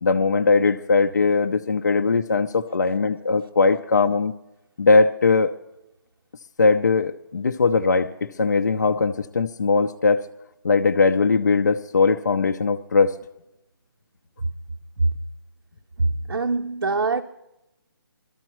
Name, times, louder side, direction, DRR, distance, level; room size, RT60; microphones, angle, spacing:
voice 1, 0.0-4.3 4.8-5.5 6.6-10.2 10.6-13.1, left 4 dB, 45° left, 0.5 m, -20 dB
voice 2, 16.0-17.2, right 3 dB, 75° right, 0.7 m, -23 dB
22.0 x 13.5 x 3.0 m
hypercardioid pair, 180°, 13 cm